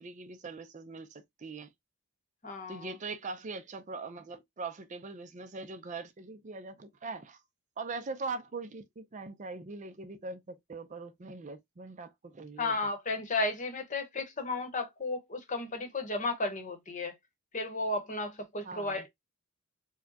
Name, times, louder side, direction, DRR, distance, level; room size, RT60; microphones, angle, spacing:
voice 1, 0.0-1.7 2.7-7.4 7.8-12.8 18.6-19.1, right 3 dB, 35° right, 0.4 m, -41 dB
voice 2, 2.4-2.9 12.6-17.2 17.5-19.1, left 2 dB, 35° left, 0.9 m, -34 dB
4.7 x 2.2 x 2.7 m
head